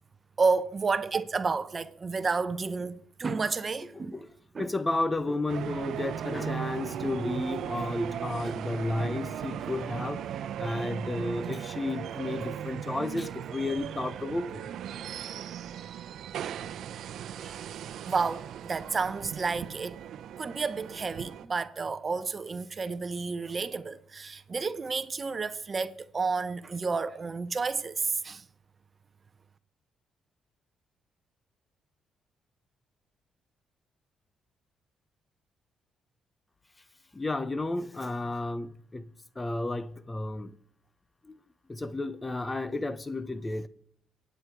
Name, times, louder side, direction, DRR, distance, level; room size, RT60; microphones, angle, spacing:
voice 1, 0.4-4.1 4.5-4.7 17.4-17.6 18.1-20.0 20.4-28.4, right 4 dB, 35° right, 0.8 m, -31 dB
voice 2, 3.9-4.3 4.6-10.2 10.6-14.7 37.1-39.0 39.4-40.5 41.3-41.4 41.7-43.7, left 2 dB, 20° left, 0.7 m, -32 dB
sound 1, 5.5-21.5, right 9 dB, 70° right, 0.7 m, -37 dB
23.5 x 9.2 x 4.7 m
cardioid pair, 90°, 0 cm